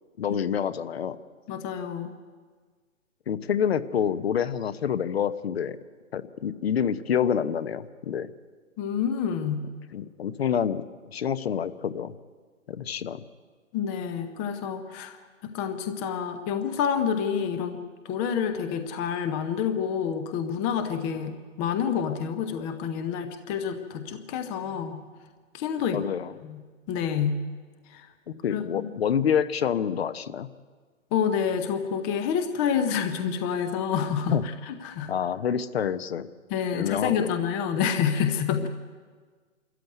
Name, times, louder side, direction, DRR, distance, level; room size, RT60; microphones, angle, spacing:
voice 1, 0.2-1.2 3.3-5.8 6.1-8.3 9.9-10.8 11.1-12.1 12.7-13.2 25.9-26.3 28.4-30.5 34.3-34.4 35.1-36.3 36.7-37.3 38.6-38.7, left 8 dB, 50° left, 14 dB, 1.1 m, -27 dB
voice 2, 1.5-2.1 8.8-9.7 13.7-15.2 15.4-17.8 18.0-25.0 25.5-26.0 26.4-26.6 26.9-27.5 27.9-28.1 28.5-28.8 31.1-35.1 36.5-38.7, left 7 dB, 15° left, 8 dB, 0.7 m, -28 dB
26.0 x 14.0 x 9.3 m, 1.5 s
hypercardioid pair, 145°, 40 cm